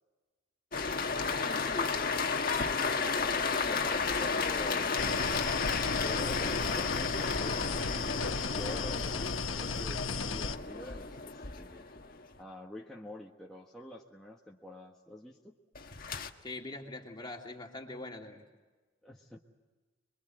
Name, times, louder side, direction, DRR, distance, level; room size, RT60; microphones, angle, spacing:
sound 1, 0.7-12.3 15.8-16.3, left 4 dB, 45° left, 1.6 m, -33 dB
voice 1, 1.4-1.9 3.5-3.8 16.4-18.4, left 2 dB, 25° left, 1 dB, 2.9 m, -42 dB
voice 2, 2.6-5.3 6.0-11.9 12.4-15.5 19.0-19.4, left 1 dB, 5° left, -3 dB, 1.5 m, -47 dB
sound 2, 5.0-10.6, left 5 dB, 85° left, 1.1 m, -35 dB
27.0 x 23.0 x 7.8 m, 1.3 s
head